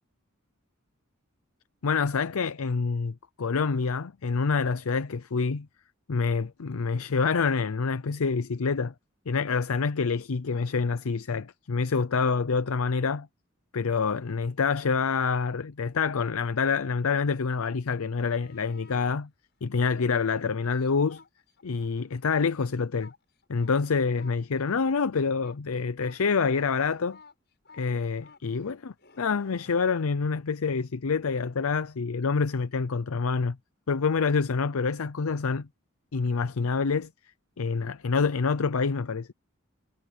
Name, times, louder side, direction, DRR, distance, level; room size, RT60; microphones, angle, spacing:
voice 1, 1.8-5.7 6.1-8.9 9.3-13.3 13.7-19.3 19.6-21.2 21.6-23.1 23.5-27.2 27.7-33.6 33.9-35.7 36.1-37.1 37.6-39.3, left 5 dB, 85° left, 0.6 m, -27 dB
sound 1, 18.0-19.2 19.8-21.9 22.2-30.4 33.2-33.3, left 4 dB, 50° left, 7.5 m, -55 dB
head